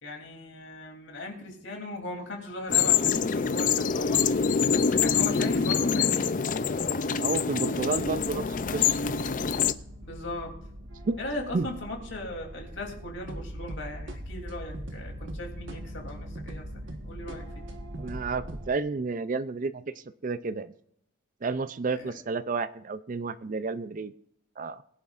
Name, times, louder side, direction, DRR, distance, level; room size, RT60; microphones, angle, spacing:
voice 1, 0.0-4.3 4.7-6.3 10.0-10.6 11.2-17.4 22.0-22.1, left 2 dB, 60° left, 1 dB, 3.1 m, -38 dB
sound 1, 2.7-9.7, left 6 dB, 40° left, 0.4 m, -25 dB
voice 2, 7.2-9.0 11.1-11.2 11.5-11.7 18.0-19.8 20.2-20.7 21.4-24.1 24.6-24.8, right 4 dB, 40° right, 14 dB, 0.4 m, -31 dB
sound 2, 7.9-18.7, equal, 60° right, 1.3 m, -41 dB
21.0 x 10.5 x 2.5 m, 0.70 s
head